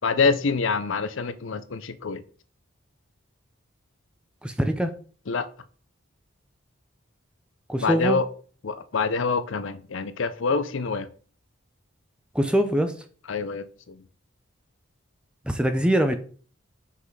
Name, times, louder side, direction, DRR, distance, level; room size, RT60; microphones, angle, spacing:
voice 1, 0.0-2.2 5.3-5.5 7.8-8.2 8.6-11.1 13.3-14.0, left 4 dB, 70° left, 12 dB, 0.6 m, -26 dB
voice 2, 4.4-4.9 7.7-8.2 12.3-12.9 15.5-16.2, equal, 5° right, 8 dB, 0.5 m, -23 dB
5.6 x 4.1 x 4.7 m, 0.42 s
head